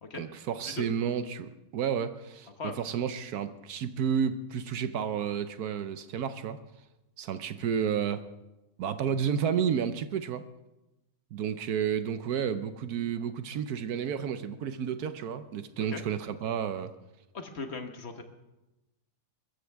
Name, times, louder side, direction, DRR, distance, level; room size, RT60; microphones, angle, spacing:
voice 1, 0.1-6.6 7.2-8.2 8.8-10.5 11.3-16.9, right 8 dB, 65° right, 11 dB, 1.1 m, -31 dB
voice 2, 17.3-18.2, left 4 dB, 40° left, 6 dB, 1.3 m, -38 dB
22.0 x 14.5 x 3.5 m, 0.98 s
omnidirectional pair, 2.0 m